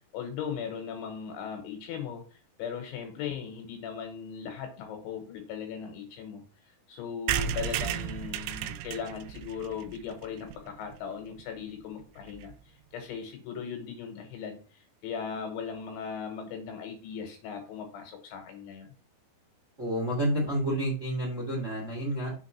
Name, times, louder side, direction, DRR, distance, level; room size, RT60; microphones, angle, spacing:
voice 1, 0.1-2.2 2.6-6.4 6.9-18.9, left 7 dB, 75° left, 5 dB, 3.2 m, -38 dB
sound 1, 7.3-11.0 11.4-11.5 11.7-11.8 12.0-12.1 12.3-12.5, right 10 dB, 85° right, 2.7 m, -34 dB
voice 2, 19.8-22.3, right 1 dB, 30° right, -2 dB, 1.3 m, -29 dB
7.3 x 3.7 x 5.7 m, 0.37 s
omnidirectional pair, 6.0 m